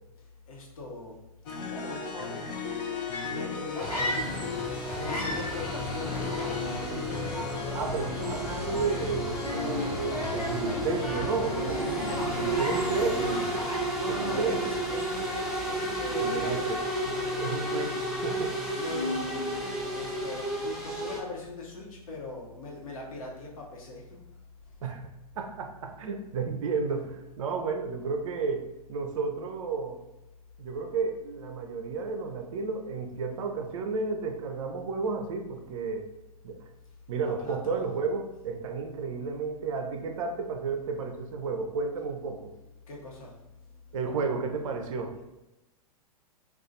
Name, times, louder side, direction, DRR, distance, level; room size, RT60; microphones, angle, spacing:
voice 1, 0.5-1.2 1.7-2.7 3.3-4.5 5.0-6.3 11.7-12.8 14.0-16.7 17.2-17.3 18.7-19.4 19.9-24.2 37.2-37.8 42.8-43.8 45.1-45.2, left 3 dB, 65° left, -2 dB, 1.0 m, -41 dB
sound 1, 1.5-13.4, left 5 dB, 40° left, 0.6 m, -36 dB
sound 2, 3.1-4.6 4.9-14.1 14.4-14.8, left 1 dB, 85° left, 1.1 m, -37 dB
sound 3, 3.8-21.2, right 1 dB, 5° right, 0.6 m, -32 dB
voice 2, 7.7-11.8 12.4-13.4 14.1-14.6 16.2-18.5 24.8-25.1 25.4-30.0 30.6-36.1 36.4-36.6 37.1-42.5 43.9-45.1, right 4 dB, 60° right, 5 dB, 0.5 m, -32 dB
2.5 x 2.4 x 3.9 m, 0.95 s
figure-of-eight pair, 105°, 19 cm